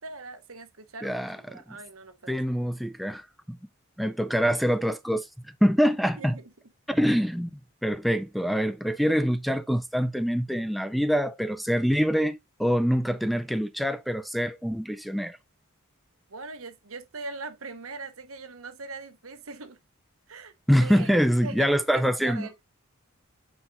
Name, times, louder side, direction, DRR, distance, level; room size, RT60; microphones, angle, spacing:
voice 1, 0.0-2.4 6.2-6.4 16.3-19.8 20.3-22.6, right 3 dB, 80° right, 1.3 m, -41 dB
voice 2, 1.0-1.6 2.3-3.2 3.5-3.6 4.0-5.3 5.6-6.4 6.9-7.5 7.8-15.4 20.7-22.5, equal, ahead, 0.3 m, -25 dB
8.8 x 4.6 x 2.5 m
head